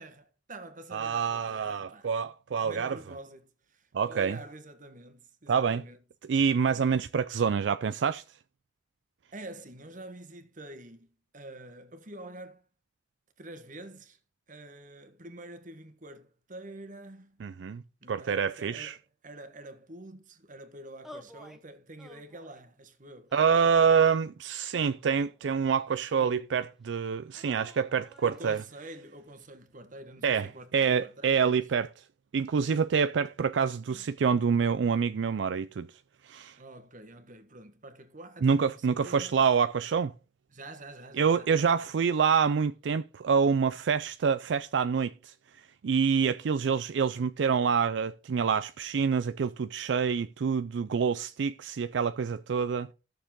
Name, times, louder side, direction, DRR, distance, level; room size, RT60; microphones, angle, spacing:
voice 1, 0.0-2.2 2.6-6.0 9.3-11.1 11.3-12.6 13.4-14.2 14.5-17.4 18.0-19.0 19.2-24.1 26.2-26.4 28.2-31.7 33.9-34.1 36.6-39.4 40.5-41.8, right 1 dB, 45° right, 1.4 m, -47 dB
voice 2, 0.9-3.0 3.9-4.4 5.5-5.8 6.3-8.2 17.4-17.8 18.1-19.0 23.3-28.6 30.2-31.9 32.3-35.9 36.2-36.6 38.4-40.1 41.2-45.3 45.8-52.9, right 6 dB, 75° right, 0.4 m, -26 dB
sound 1, 21.0-21.6 22.0-22.7 23.3-24.2 25.0-26.0 27.3-28.7, left 1 dB, ahead, 1.0 m, -53 dB
14.5 x 6.6 x 3.8 m
head